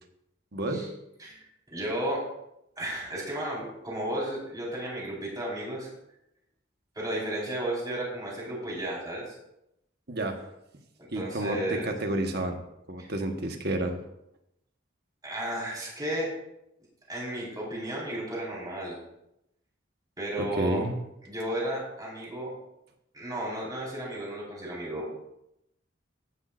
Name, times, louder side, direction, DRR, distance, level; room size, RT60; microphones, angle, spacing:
voice 1, 0.5-0.9 10.1-10.5 11.1-12.6 12.9-14.0 20.4-20.9, right 1 dB, 60° right, 4 dB, 1.4 m, -30 dB
voice 2, 1.7-2.2 2.8-5.9 6.9-9.3 11.1-11.9 13.0-13.1 15.2-16.3 17.1-19.0 20.2-20.8 21.2-22.5 23.1-25.2, right 1 dB, 20° right, -5 dB, 4.8 m, -33 dB
14.5 x 10.5 x 2.6 m, 0.83 s
head